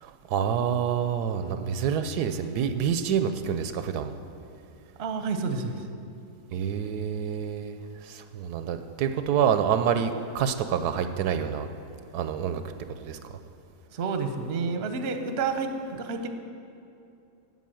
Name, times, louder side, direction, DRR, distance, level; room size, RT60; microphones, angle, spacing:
voice 1, 0.0-4.1 6.5-11.7 12.1-12.6 13.0-13.4, right 8 dB, 80° right, 9 dB, 1.1 m, -27 dB
voice 2, 5.0-5.9 13.9-16.3, right 4 dB, 50° right, 6 dB, 0.9 m, -29 dB
9.3 x 8.1 x 7.7 m, 2.6 s
omnidirectional pair, 1.7 m